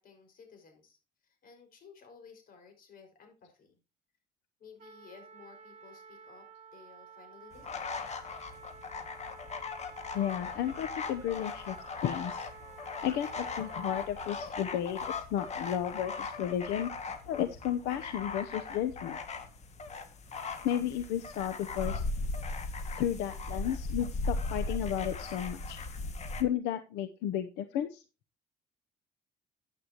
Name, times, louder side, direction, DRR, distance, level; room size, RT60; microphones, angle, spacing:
voice 1, 0.0-3.7 4.6-6.5 6.7-7.9, left 6 dB, 60° left, 4 dB, 5.6 m, -55 dB
Trumpet, 4.8-14.3, right 7 dB, 45° right, 3.4 m, -52 dB
sound 1, 7.5-26.4, left 3 dB, 40° left, 2.0 m, -38 dB
voice 2, 10.1-11.8 12.0-12.4 13.0-16.9 17.3-19.2 20.6-22.0 23.0-25.8 26.4-28.0, left 10 dB, 90° left, 10 dB, 0.8 m, -33 dB
14.5 x 8.7 x 3.0 m, 0.30 s
cardioid pair, 110°, 17 cm